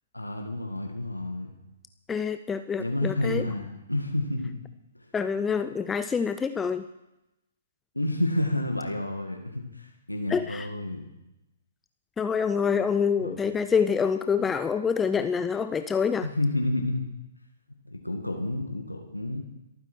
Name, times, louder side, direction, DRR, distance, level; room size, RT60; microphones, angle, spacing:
voice 1, 0.1-1.5 2.8-4.5 5.0-5.1 7.9-11.1 13.2-13.4 14.4-14.5 16.2-17.0 17.8-19.4, left 1 dB, 85° left, 2 dB, 2.0 m, -30 dB
voice 2, 2.1-3.5 5.1-6.9 10.3-10.7 12.2-16.3, left 6 dB, 10° left, 10 dB, 0.5 m, -26 dB
27.5 x 9.5 x 4.6 m, 0.93 s
figure-of-eight pair, 120°, 0 cm